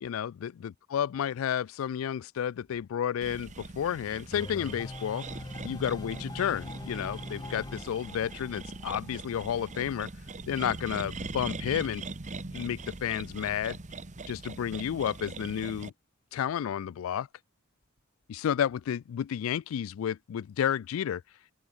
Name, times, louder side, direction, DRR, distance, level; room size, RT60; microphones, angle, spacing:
voice 1, 0.0-5.3 5.6-10.1 10.5-12.0 12.5-13.8 14.3-15.9 16.3-17.3 18.3-21.2, left 9 dB, 90° left, 0.3 m, -31 dB
sound 1, 2.6-3.1 3.3-19.3 20.4-20.5, left 1 dB, 55° left, 2.8 m, -69 dB
sound 2, 3.2-15.9, right 3 dB, 35° right, 1.2 m, -41 dB
sound 3, 4.3-10.0, left 2 dB, 20° left, 0.6 m, -43 dB
open air
head